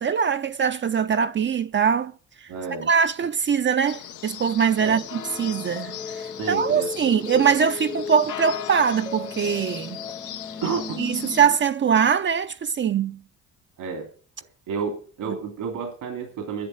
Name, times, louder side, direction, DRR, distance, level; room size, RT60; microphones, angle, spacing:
voice 1, 0.0-2.1 2.9-10.0 11.0-13.2 15.3-15.4, right 7 dB, 40° right, 0.6 m, -22 dB
voice 2, 2.5-2.9 4.8-5.0 6.4-7.5 10.6-11.0 13.8-14.1 14.7-16.7, right 5 dB, 85° right, 2.7 m, -31 dB
sound 1, 3.9-11.4, left 11 dB, 80° left, 1.0 m, -38 dB
sound 2, 4.8-11.6, left 5 dB, 15° left, 0.5 m, -36 dB
11.0 x 7.4 x 8.7 m
cardioid pair, 90°, 30 cm